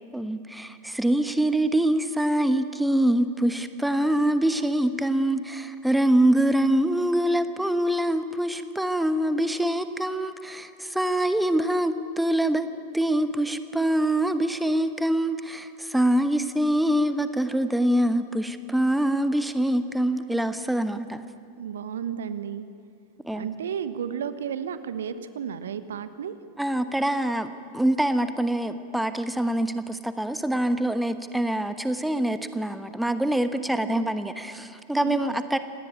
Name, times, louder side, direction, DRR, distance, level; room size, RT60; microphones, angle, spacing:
voice 1, 0.1-12.7 12.9-21.2 23.2-23.5 26.6-27.5 27.7-35.6, right 1 dB, 5° right, 11 dB, 1.1 m, -24 dB
voice 2, 21.6-22.7 23.3-26.3 33.5-34.1 34.9-35.4, right 8 dB, 65° right, 12 dB, 1.2 m, -33 dB
26.5 x 19.0 x 9.5 m, 2.4 s
figure-of-eight pair, 90°, 0 cm